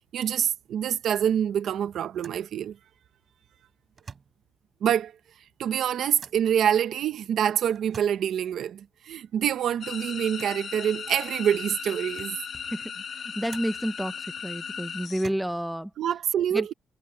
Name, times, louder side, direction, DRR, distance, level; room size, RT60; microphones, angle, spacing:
voice 1, 0.1-2.8 4.8-5.1 5.6-12.4 16.0-16.7, right 9 dB, 65° right, 0.9 m, -26 dB
sound 1, 2.1-2.5 3.9-4.4 6.2-6.5 7.7-8.3 10.3-10.6 11.4-11.5 11.9-12.4 13.4-13.9 15.1-15.7, right 5 dB, 30° right, 6.6 m, -48 dB
sound 2, 9.8-15.2, left 7 dB, 45° left, 1.7 m, -37 dB
voice 2, 12.7-13.0 13.3-14.1 14.4-15.9 16.5-16.7, equal, 5° right, 1.0 m, -30 dB
cardioid pair, 160°, 0 cm